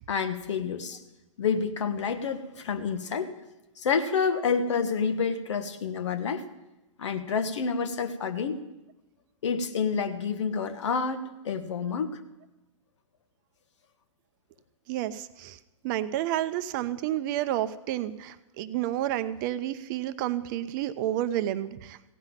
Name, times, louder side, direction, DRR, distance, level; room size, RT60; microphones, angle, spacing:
voice 1, 0.1-1.0 1.4-3.3 3.8-6.4 7.0-8.6 9.4-12.2, left 5 dB, 65° left, 9 dB, 1.3 m, -28 dB
voice 2, 14.9-15.6 15.8-22.0, right 13 dB, 40° right, 13 dB, 0.6 m, -30 dB
16.5 x 5.7 x 9.0 m, 1.0 s
figure-of-eight pair, 115°, 16 cm